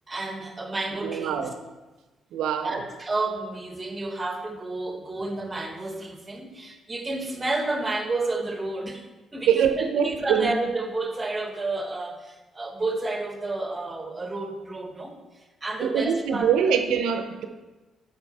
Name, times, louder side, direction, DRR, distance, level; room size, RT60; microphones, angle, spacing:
voice 1, 0.1-1.5 2.6-9.0 9.3-16.8, right 2 dB, 25° right, 5 dB, 1.1 m, -31 dB
voice 2, 1.0-1.5 2.3-2.8 9.5-10.5 15.8-17.5, right 7 dB, 90° right, 7 dB, 0.7 m, -24 dB
8.1 x 5.5 x 4.2 m, 1.2 s
cardioid pair, 90°, 0 cm